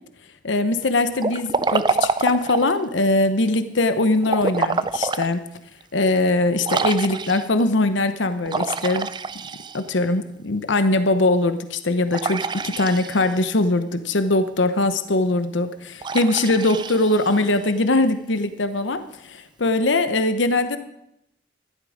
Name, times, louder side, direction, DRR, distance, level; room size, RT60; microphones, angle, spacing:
voice 1, 0.4-5.4 5.9-9.1 9.7-20.8, left 2 dB, 75° left, 10 dB, 0.9 m, -21 dB
Liquid, 1.2-2.8 4.2-5.3 5.8-5.9 6.6-7.6 8.5-10.1 12.1-13.5 16.0-17.7, right 4 dB, 25° right, 0.4 m, -26 dB
14.5 x 12.0 x 5.0 m, 0.81 s
head